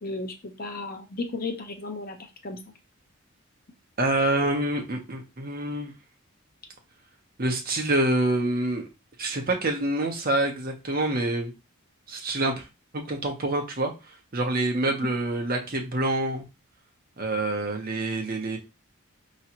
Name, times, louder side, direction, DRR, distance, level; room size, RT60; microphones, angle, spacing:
voice 1, 0.0-2.2 2.4-2.6, left 3 dB, 45° left, 4 dB, 0.9 m, -34 dB
voice 2, 4.0-5.9 7.4-8.9 9.2-11.5 12.1-12.7 13.1-13.9 14.3-16.4 17.2-18.6, right 1 dB, 40° right, 3 dB, 0.9 m, -26 dB
4.9 x 3.1 x 2.9 m, 0.26 s
head